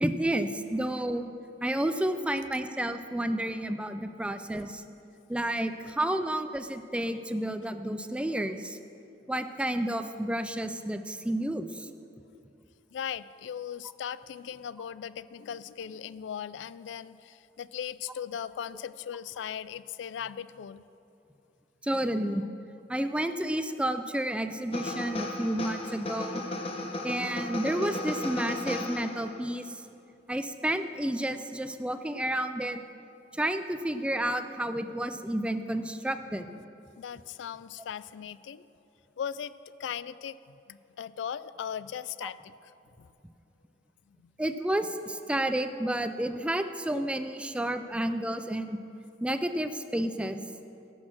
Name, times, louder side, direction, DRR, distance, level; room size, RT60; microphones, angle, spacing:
voice 1, 0.0-1.3 1.6-4.8 5.3-8.8 9.3-11.9 21.8-22.5 22.9-26.4 27.0-29.8 30.3-32.8 33.3-36.5 42.2-42.3 44.4-48.8 49.2-50.4, right 1 dB, 5° right, 9 dB, 0.4 m, -31 dB
voice 2, 12.9-20.8 37.0-38.6 39.2-39.5 39.8-42.7 43.0-43.1 44.1-44.3, left 8 dB, 85° left, 16 dB, 0.3 m, -38 dB
sound 1, 24.7-29.5, left 2 dB, 35° left, 0.9 m, -35 dB
16.5 x 6.4 x 6.1 m, 2.7 s
head